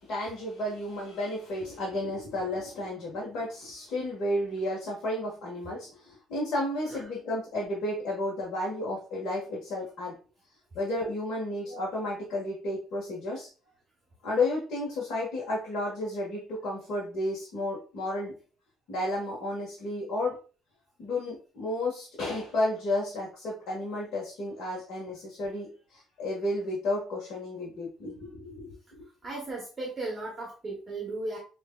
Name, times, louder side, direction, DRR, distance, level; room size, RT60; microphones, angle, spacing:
voice 1, 0.0-10.2 10.7-13.5 14.2-18.4 18.9-20.4 21.0-28.7, left 1 dB, 50° left, -4 dB, 1.5 m, -32 dB
voice 2, 29.2-31.4, right 2 dB, 15° right, -2 dB, 0.9 m, -36 dB
6.4 x 2.6 x 2.3 m, 0.36 s
cardioid pair, 175°, 0 cm